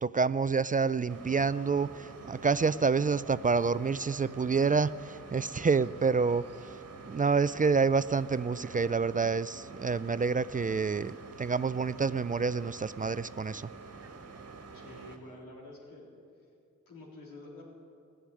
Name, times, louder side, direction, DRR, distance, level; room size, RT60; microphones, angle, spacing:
voice 1, 0.0-6.4 7.1-13.7, right 5 dB, 25° right, 16 dB, 0.4 m, -28 dB
sound 1, 1.1-15.2, right 4 dB, 45° right, 1.6 m, -48 dB
voice 2, 14.7-16.1 16.9-17.7, left 2 dB, 90° left, -3 dB, 3.7 m, -48 dB
16.0 x 8.0 x 9.7 m, 2.4 s
supercardioid pair, 50°, 32 cm